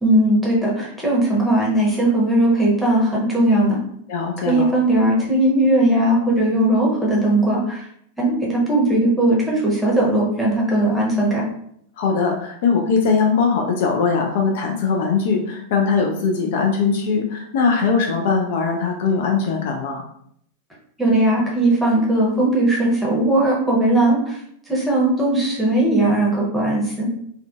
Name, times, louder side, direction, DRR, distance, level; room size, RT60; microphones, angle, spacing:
voice 1, 0.0-3.8 4.4-7.8 8.2-11.4 21.0-24.4 24.7-27.1, right 1 dB, ahead, -5 dB, 0.8 m, -18 dB
voice 2, 4.1-4.7 12.0-20.0, left 5 dB, 55° left, 2 dB, 0.3 m, -20 dB
2.4 x 2.2 x 2.3 m, 0.69 s
figure-of-eight pair, 90°, 0 cm